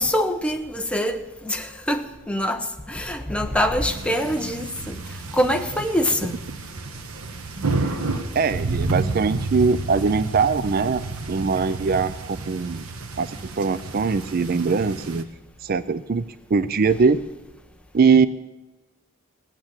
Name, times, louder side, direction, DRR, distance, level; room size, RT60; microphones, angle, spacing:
voice 1, 0.0-6.4, equal, 5° left, 0.9 m, -25 dB
sound 1, 3.8-15.2, right 3 dB, 90° right, 1.3 m, -30 dB
voice 2, 8.3-12.9 13.2-15.3 15.6-16.2 16.5-17.2 17.9-18.3, right 5 dB, 45° right, 0.4 m, -21 dB
17.5 x 8.9 x 7.5 m
head